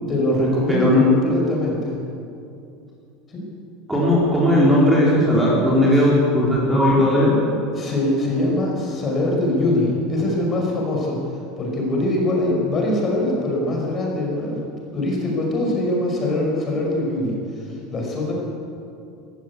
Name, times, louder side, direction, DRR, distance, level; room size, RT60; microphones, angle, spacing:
voice 1, 0.1-1.9 3.3-3.4 7.7-11.2 11.6-14.6 14.9-18.3, left 1 dB, 25° left, -1 dB, 5.5 m, -22 dB
voice 2, 0.7-1.0 3.9-7.3, left 1 dB, 5° right, -6 dB, 4.2 m, -17 dB
22.5 x 15.0 x 8.4 m, 2.6 s
cardioid pair, 165°, 0 cm